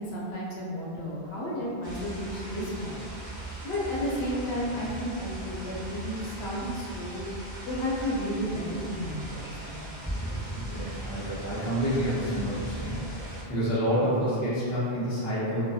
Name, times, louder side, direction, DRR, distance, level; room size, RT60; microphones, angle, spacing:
voice 1, 0.0-3.1 3.6-7.3 7.7-9.9, equal, 80° left, -5 dB, 0.8 m, -32 dB
sound 1, 1.8-13.4, right 1 dB, 30° right, 0.3 m, -39 dB
voice 2, 10.5-15.7, equal, 20° left, -10 dB, 0.6 m, -29 dB
2.2 x 2.2 x 2.6 m, 2.3 s
omnidirectional pair, 1.0 m